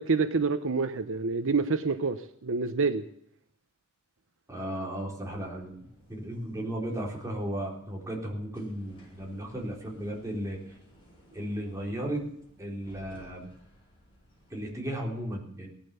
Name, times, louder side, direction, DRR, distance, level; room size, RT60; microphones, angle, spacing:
voice 1, 0.0-3.0, right 4 dB, 60° right, 9 dB, 0.8 m, -27 dB
voice 2, 4.5-5.7 6.1-10.6 11.3-12.3 12.6-13.5 14.5-15.7, right 1 dB, 15° right, -2 dB, 4.1 m, -35 dB
sound 1, 5.2-14.9, equal, 25° left, 7.0 m, -58 dB
17.5 x 11.5 x 6.9 m, 0.70 s
head